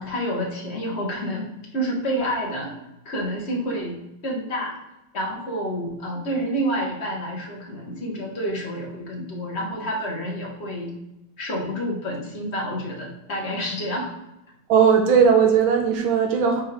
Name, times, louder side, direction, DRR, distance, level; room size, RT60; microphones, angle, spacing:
voice 1, 0.0-2.7 3.1-4.7 5.1-10.9 11.4-14.1, equal, 35° left, -2 dB, 1.8 m, -29 dB
voice 2, 14.7-16.6, right 6 dB, 85° right, 2 dB, 1.7 m, -17 dB
9.4 x 4.4 x 3.6 m, 0.91 s
omnidirectional pair, 2.1 m